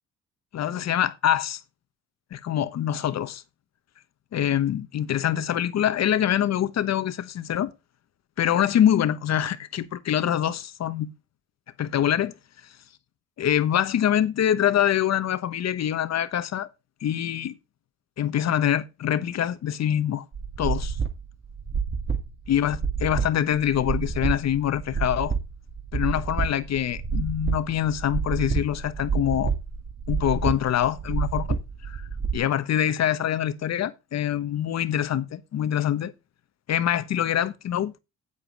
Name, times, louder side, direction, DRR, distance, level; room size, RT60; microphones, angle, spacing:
voice 1, 0.5-1.6 2.3-3.4 4.3-7.7 8.4-11.1 11.8-12.3 13.4-16.7 17.0-17.5 18.2-20.2 20.6-21.0 22.5-25.3 25.9-29.5 30.1-31.6 31.8-32.1 32.3-36.1 36.7-37.9, left 10 dB, 60° left, 1.1 m, -25 dB
sound 1, 20.3-32.4, right 5 dB, 35° right, 2.0 m, -29 dB
8.5 x 7.5 x 4.6 m
cardioid pair, 90°, 30 cm